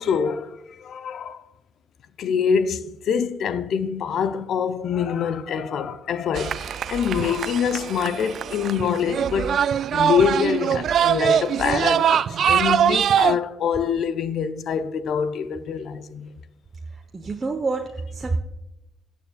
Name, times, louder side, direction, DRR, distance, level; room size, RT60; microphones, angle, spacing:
voice 1, 0.0-1.4 2.2-9.6 9.9-16.3, left 7 dB, 65° left, 0.7 m, -25 dB
sound 1, 6.4-13.4, right 9 dB, 60° right, 0.3 m, -22 dB
voice 2, 17.1-18.4, right 3 dB, 30° right, 1.0 m, -27 dB
16.0 x 9.2 x 2.3 m
hypercardioid pair, 50°, 0 cm